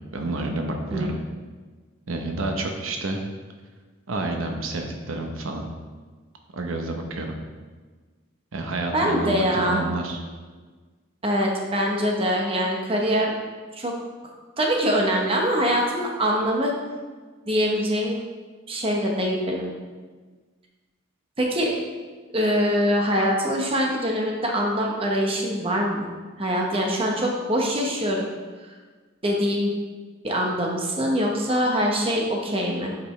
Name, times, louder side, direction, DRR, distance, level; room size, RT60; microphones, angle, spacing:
voice 1, 0.1-1.1 2.1-3.2 4.1-5.7 6.5-7.3 8.5-10.2, right 2 dB, 85° right, 3 dB, 0.8 m, -29 dB
voice 2, 8.9-9.8 11.2-13.3 13.7-13.9 14.6-16.7 17.5-18.2 18.7-19.7 21.4-21.8 22.3-26.1 26.4-28.3 28.6-28.7 29.2-29.7 30.2-32.9, equal, 30° right, 0 dB, 0.9 m, -23 dB
8.4 x 5.2 x 3.2 m, 1.4 s
head